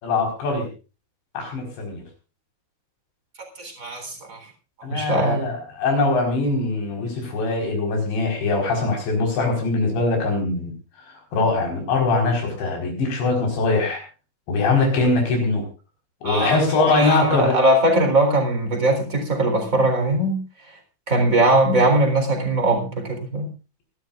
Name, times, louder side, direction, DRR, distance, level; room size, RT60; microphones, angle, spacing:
voice 1, 0.0-0.7 1.3-2.0 4.8-10.7 11.3-14.0 14.5-15.7 16.2-17.6, left 3 dB, 60° left, 3 dB, 6.8 m, -22 dB
voice 2, 3.6-4.4 4.9-5.5 16.2-16.6 16.9-20.4 21.1-23.5, right 1 dB, 20° right, 5 dB, 3.5 m, -20 dB
26.0 x 13.0 x 2.5 m, 0.33 s
omnidirectional pair, 5.7 m